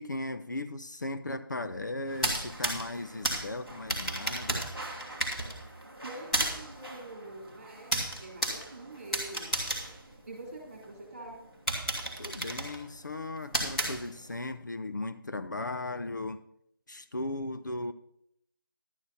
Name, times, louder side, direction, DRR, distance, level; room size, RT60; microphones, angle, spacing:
voice 1, 0.0-4.7 12.2-16.4 16.9-17.9, left 2 dB, 55° left, 10 dB, 0.6 m, -37 dB
sound 1, 2.1-10.8 11.3-11.4 11.7-14.4, right 1 dB, ahead, 0.8 m, -34 dB
voice 2, 6.0-9.5 10.3-11.4, right 2 dB, 30° right, 1 dB, 3.4 m, -45 dB
12.0 x 9.5 x 4.1 m, 0.73 s
figure-of-eight pair, 180°, 12 cm